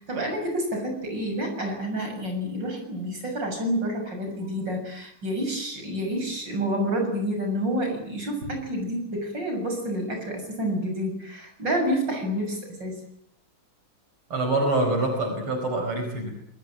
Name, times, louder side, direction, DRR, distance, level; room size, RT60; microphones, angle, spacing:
voice 1, 0.0-13.0, equal, 55° right, 3 dB, 7.7 m, -29 dB
voice 2, 14.3-16.4, right 2 dB, 90° right, 4 dB, 5.8 m, -25 dB
27.5 x 21.0 x 8.9 m, 0.68 s
omnidirectional pair, 2.3 m